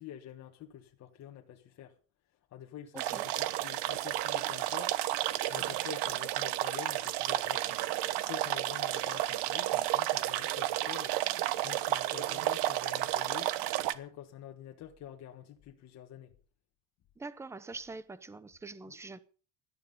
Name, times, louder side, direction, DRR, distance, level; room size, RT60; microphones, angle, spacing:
voice 1, 0.0-1.9 2.5-7.8 8.2-11.2 11.4-13.5 13.9-16.3 18.9-19.0, left 11 dB, 40° left, 1.5 m, -48 dB
voice 2, 2.9-3.2 17.2-19.2, right 3 dB, 5° right, 0.6 m, -44 dB
sound 1, 3.0-13.9, right 15 dB, 75° right, 1.2 m, -32 dB
17.5 x 12.5 x 5.3 m
cardioid pair, 180°, 41 cm